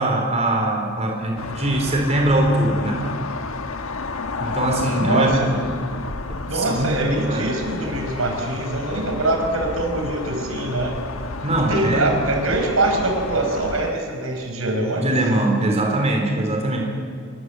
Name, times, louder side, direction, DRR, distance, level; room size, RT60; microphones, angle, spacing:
voice 1, 0.0-3.0 4.4-5.5 6.5-7.0 7.2-7.5 11.4-12.1 15.0-16.8, right 1 dB, 30° right, 1 dB, 4.6 m, -21 dB
sound 1, 1.4-13.9, left 3 dB, 85° left, 1.3 m, -31 dB
voice 2, 5.0-5.5 6.5-11.0 11.5-15.1, right 2 dB, 85° right, 3 dB, 5.6 m, -23 dB
26.5 x 23.5 x 8.2 m, 2.2 s
head